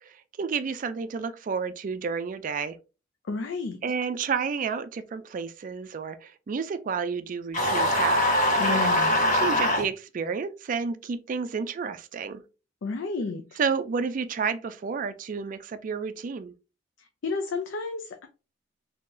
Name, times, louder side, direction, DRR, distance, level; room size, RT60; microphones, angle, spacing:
voice 1, 0.0-2.8 3.8-8.3 8.6-9.0 9.3-12.4 13.6-16.5, right 5 dB, 45° right, 0.3 m, -31 dB
voice 2, 3.3-3.8 8.6-9.2 12.8-13.4 17.2-18.3, left 4 dB, 70° left, 0.5 m, -31 dB
sound 1, 7.5-9.8, left 1 dB, 40° left, 1.4 m, -22 dB
3.7 x 2.8 x 2.6 m
head